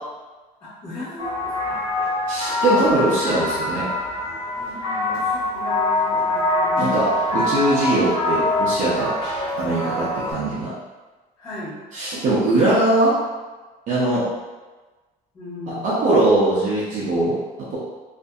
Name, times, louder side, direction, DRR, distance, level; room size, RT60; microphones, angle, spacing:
voice 1, 0.6-1.8 4.6-6.8 11.4-11.8 15.3-16.1, left 1 dB, 25° left, -12 dB, 1.3 m, -37 dB
sound 1, 1.2-10.3, left 2 dB, 60° left, 1.0 m, -24 dB
voice 2, 2.3-3.9 6.8-9.1 9.6-10.7 11.9-13.2 13.9-14.2 15.7-17.3, right 2 dB, 50° right, -8 dB, 0.6 m, -21 dB
2.6 x 2.5 x 2.3 m, 1.2 s
cardioid pair, 175°, 16 cm